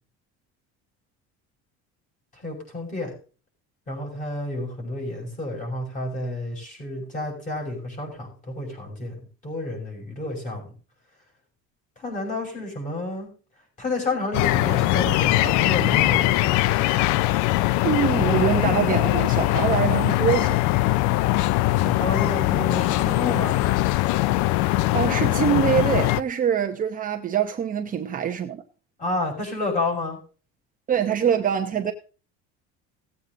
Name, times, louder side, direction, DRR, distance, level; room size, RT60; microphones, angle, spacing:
voice 1, 2.4-3.1 3.9-10.7 12.0-13.3 13.8-16.7 21.8-23.5 29.0-30.2, left 2 dB, 25° left, 5.8 m, -30 dB
sound 1, 14.3-26.2, left 18 dB, 70° left, 0.5 m, -21 dB
voice 2, 17.8-20.6 24.9-28.6 30.9-31.9, right 8 dB, 25° right, 0.9 m, -24 dB
17.0 x 8.3 x 3.8 m
cardioid pair, 155°, 30 cm